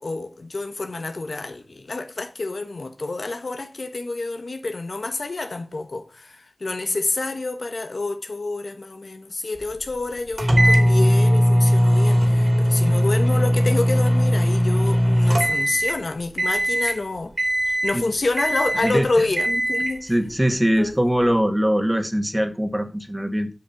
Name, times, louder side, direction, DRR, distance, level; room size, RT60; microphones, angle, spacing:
voice 1, 0.0-17.3 17.6-20.1 20.5-20.9 21.2-21.3, left 3 dB, 85° left, 1.2 m, -28 dB
sound 1, 10.4-16.0 16.4-17.0 17.4-18.0 18.4-19.0 19.4-20.0, equal, 60° right, 2.8 m, -19 dB
voice 2, 18.8-19.3 20.0-23.5, equal, 10° right, 1.8 m, -22 dB
7.6 x 6.3 x 5.8 m
wide cardioid pair, 45°, 0 cm